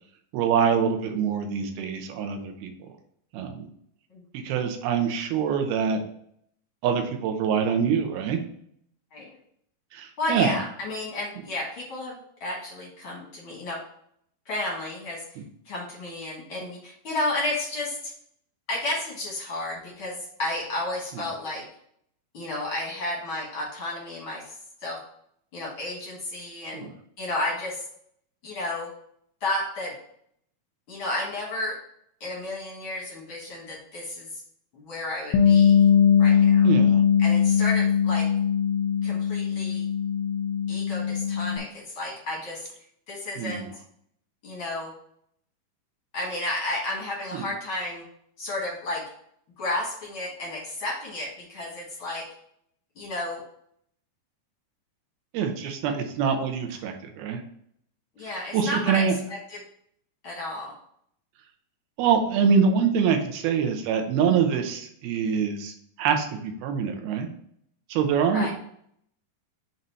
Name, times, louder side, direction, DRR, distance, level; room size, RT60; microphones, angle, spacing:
voice 1, 0.3-2.7 3.3-3.7 4.3-6.0 6.8-8.4 9.9-10.6 15.4-15.5 21.1-21.2 26.6-26.9 36.6-37.0 43.4-43.7 47.3-47.5 55.3-57.4 58.2-59.2 62.0-67.3 67.9-68.5, right 6 dB, 80° right, 5 dB, 2.6 m, -25 dB
voice 2, 10.2-13.8 14.4-15.2 15.6-18.1 18.7-21.6 22.3-25.0 25.5-26.9 27.2-27.8 28.4-28.9 29.4-29.9 30.9-31.8 32.2-34.3 34.7-35.8 36.2-36.7 37.2-38.3 39.0-39.8 40.7-42.7 43.1-43.6 44.4-44.9 46.1-48.0 48.4-49.0 49.6-52.3 52.9-53.4 58.2-59.0 60.2-60.7 68.3-68.5, left 2 dB, 65° left, -3 dB, 1.2 m, -32 dB
Bass guitar, 35.3-41.6, left 7 dB, 80° left, 2.3 m, -20 dB
7.6 x 2.7 x 5.4 m, 0.67 s
omnidirectional pair, 4.5 m